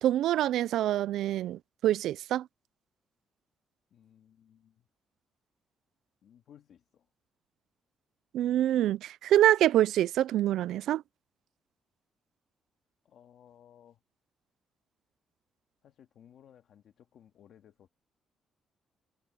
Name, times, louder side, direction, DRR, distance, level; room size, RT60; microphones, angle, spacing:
voice 1, 0.0-2.5 8.3-11.0, right 12 dB, 85° right, 0.3 m, -26 dB
voice 2, 3.9-4.9 6.2-7.1 13.0-14.0 15.8-17.9, left 9 dB, 55° left, 2.4 m, -58 dB
cardioid pair, 180°, 0 cm